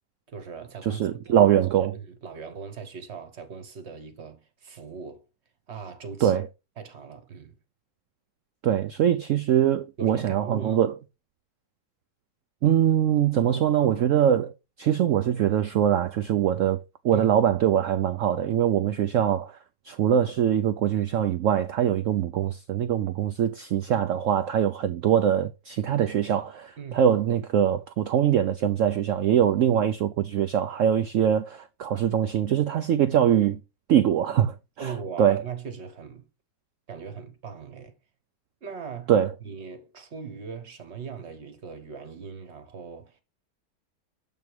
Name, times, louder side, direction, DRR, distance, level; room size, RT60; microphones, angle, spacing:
voice 1, 0.3-1.3 1.9-5.2 5.7-6.4 6.8-7.6 10.0-10.8 17.1-17.3 26.8-27.0 29.7-29.8 34.8-36.3 36.9-38.0 38.6-39.1 39.4-43.2, right 6 dB, 45° right, 1.3 m, -39 dB
voice 2, 0.8-2.0 6.2-6.5 8.6-10.9 12.6-19.6 19.8-33.6 33.9-35.4 39.1-39.3, right 10 dB, 80° right, 0.7 m, -23 dB
7.7 x 3.6 x 4.5 m
omnidirectional pair, 1.9 m